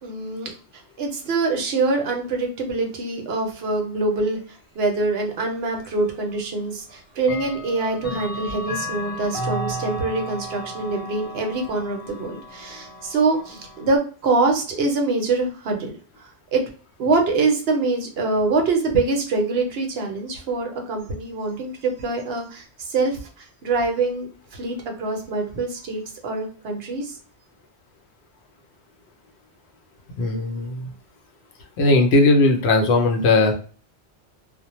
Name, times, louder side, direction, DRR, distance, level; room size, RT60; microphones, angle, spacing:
voice 1, 0.0-16.6 17.0-27.2, right 3 dB, 65° right, 2 dB, 0.8 m, -24 dB
Clock, 5.8-5.9 7.2-14.0, equal, 40° left, 0.5 m, -34 dB
voice 2, 30.2-30.9 31.8-33.5, left 2 dB, 70° left, 3 dB, 0.8 m, -18 dB
2.1 x 2.0 x 2.9 m, 0.39 s
omnidirectional pair, 1.2 m